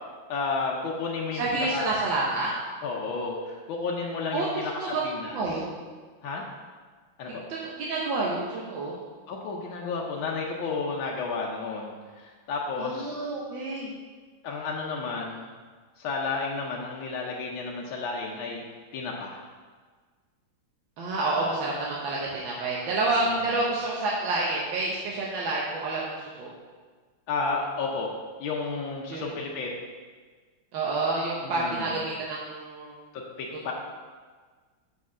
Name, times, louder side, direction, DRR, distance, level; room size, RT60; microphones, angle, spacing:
voice 1, 0.3-1.9 2.8-4.7 5.0-5.6 6.2-6.5 7.2-7.3 9.3-13.3 14.4-15.5 16.0-18.6 18.9-19.4 23.2-23.6 27.3-28.1 28.4-29.7 31.4-32.0 33.1-33.7, left 4 dB, 80° left, -1 dB, 1.6 m, -32 dB
voice 2, 1.4-2.5 4.3-4.5 4.8-5.0 5.3-5.6 7.3-9.0 12.8-13.9 21.0-26.5 29.1-29.2 30.7-32.9, right 2 dB, 75° right, -5 dB, 1.7 m, -29 dB
6.0 x 4.7 x 6.1 m, 1.5 s
omnidirectional pair, 2.2 m